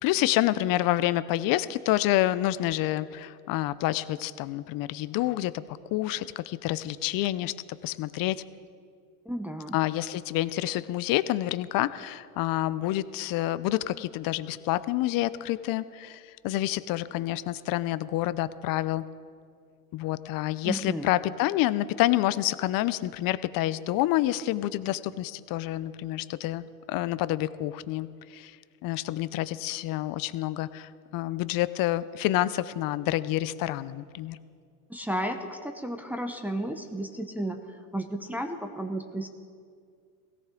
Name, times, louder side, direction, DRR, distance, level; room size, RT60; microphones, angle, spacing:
voice 1, 0.0-5.5 5.9-7.5 7.8-8.4 9.7-19.0 19.9-28.5 28.8-34.4, left 15 dB, 50° left, 16 dB, 0.7 m, -28 dB
voice 2, 9.2-9.8 20.6-21.1 34.9-39.3, right 1 dB, 5° right, 3 dB, 1.0 m, -33 dB
17.0 x 17.0 x 3.8 m, 2.2 s
hypercardioid pair, 95°, 46 cm